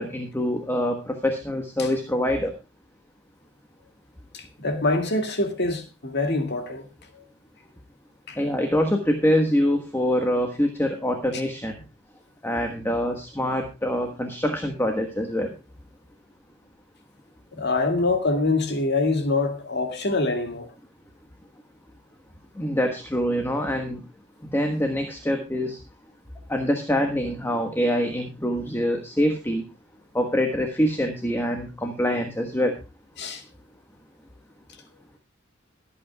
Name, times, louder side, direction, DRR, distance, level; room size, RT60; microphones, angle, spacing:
voice 1, 0.0-2.5 8.4-11.8 12.4-15.5 22.6-24.0 24.5-25.8 26.5-29.6 30.1-32.7, equal, 10° left, 1.4 m, -25 dB
voice 2, 4.3-6.9 7.1-7.2 8.3-8.4 17.5-20.7 33.2-33.4, left 2 dB, 55° left, 2.3 m, -25 dB
23.0 x 8.6 x 2.3 m
head